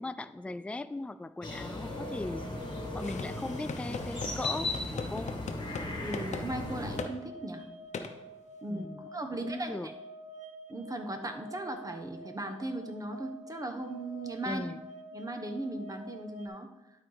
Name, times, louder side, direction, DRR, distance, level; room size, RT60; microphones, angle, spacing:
voice 1, 0.0-2.4 2.9-4.7 4.9-5.4 8.7-9.1 9.4-9.9 14.4-14.8, left 2 dB, 10° left, 12 dB, 0.3 m, -38 dB
sound 1, 1.4-7.0, left 2 dB, 35° left, 1.7 m, -37 dB
sound 2, 1.7-16.5, right 1 dB, 75° right, 0.9 m, -49 dB
sound 3, 3.0-5.9 6.1-6.5 7.0-7.1 7.9-8.1, left 5 dB, 65° left, 0.8 m, -39 dB
voice 2, 6.0-7.6 8.6-9.8 10.7-14.6 15.1-16.7, right 1 dB, 30° right, 6 dB, 1.1 m, -37 dB
11.5 x 4.5 x 4.1 m, 1.0 s
cardioid pair, 70°, 13 cm